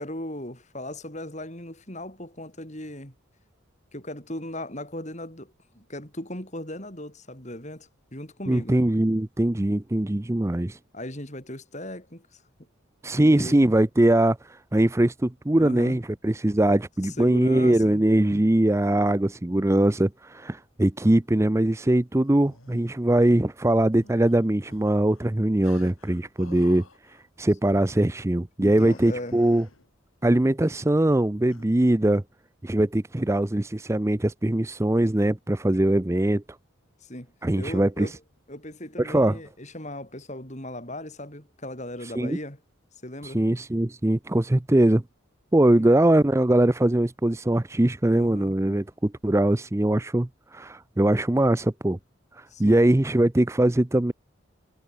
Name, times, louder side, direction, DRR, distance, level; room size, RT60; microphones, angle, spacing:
voice 1, 0.0-3.1 3.9-8.8 10.9-12.4 13.2-13.8 15.6-16.0 17.0-18.0 28.6-29.4 37.0-38.2 38.5-42.6 43.0-43.4 45.8-45.9 48.1-48.5 52.5-52.9, left 1 dB, 35° left, 6.4 m, -37 dB
voice 2, 8.5-10.8 13.0-29.6 30.2-32.2 32.6-36.4 37.4-38.1 39.0-39.4 42.0-42.4 43.2-45.0 45.5-52.0 52.3-54.1, right 1 dB, 15° right, 0.5 m, -22 dB
sound 1, 22.2-23.0 23.9-25.3 25.6-27.2 27.6-28.0 28.8-29.9 31.5-31.7, left 3 dB, 80° left, 6.7 m, -51 dB
head